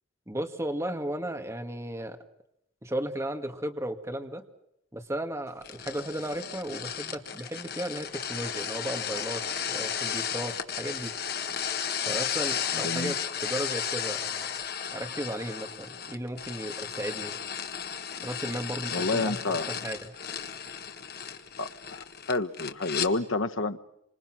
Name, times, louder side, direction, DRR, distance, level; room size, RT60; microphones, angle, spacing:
voice 1, 0.3-2.2 2.8-4.5 4.9-11.1 12.1-14.6 14.9-17.4 18.2-20.0, right 1 dB, 15° right, 5 dB, 2.1 m, -35 dB
sound 1, 5.6-23.1, left 8 dB, 50° left, 1.7 m, -34 dB
voice 2, 12.7-13.1 18.9-19.7 21.6-23.8, left 3 dB, 80° left, 8 dB, 1.2 m, -29 dB
27.5 x 26.5 x 6.2 m, 0.79 s
head